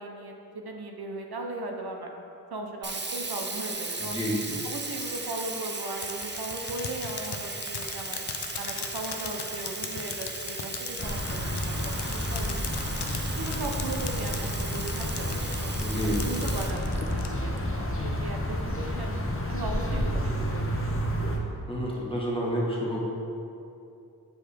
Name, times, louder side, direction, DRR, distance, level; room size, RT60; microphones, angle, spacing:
voice 1, 0.0-2.1 2.5-4.3 4.6-8.2 8.6-12.8 13.4-15.7 16.0-19.2 19.5-20.8, right 2 dB, 70° right, 2 dB, 0.7 m, -37 dB
Sink (filling or washing), 2.8-17.6, right 3 dB, 30° right, 0.5 m, -37 dB
voice 2, 4.0-4.6 15.8-16.4 21.7-23.0, equal, 15° left, -5 dB, 1.4 m, -30 dB
sound 1, 6.0-17.3, left 7 dB, 85° left, 0.5 m, -38 dB
sound 2, 11.0-21.4, equal, 35° left, 0.8 m, -30 dB
8.0 x 4.6 x 3.5 m, 2.6 s
wide cardioid pair, 60°, 39 cm